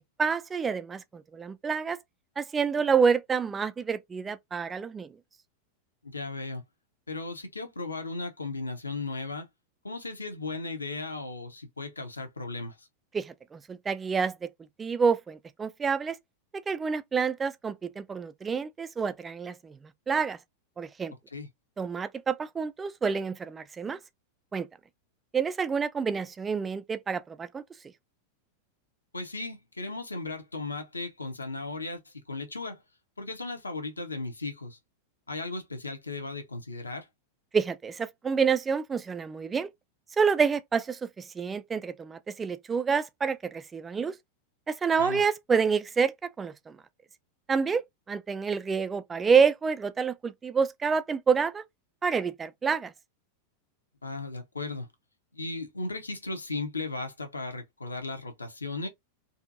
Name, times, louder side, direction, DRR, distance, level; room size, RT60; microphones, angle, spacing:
voice 1, 0.0-2.0 2.4-5.2 13.1-14.5 14.8-16.2 16.7-20.4 20.8-21.1 21.8-24.0 24.5-24.7 25.3-27.6 37.5-39.7 40.2-44.1 44.7-46.8 47.5-51.6 52.0-52.9, right 6 dB, 15° right, 0.3 m, -28 dB
voice 2, 6.0-6.6 7.1-9.5 9.8-12.9 21.3-21.5 29.1-32.8 33.2-34.8 35.3-37.1 45.0-45.2 54.0-54.9 55.3-58.9, left 3 dB, 80° left, 0.7 m, -36 dB
2.7 x 2.5 x 2.5 m
figure-of-eight pair, 90°, 0 cm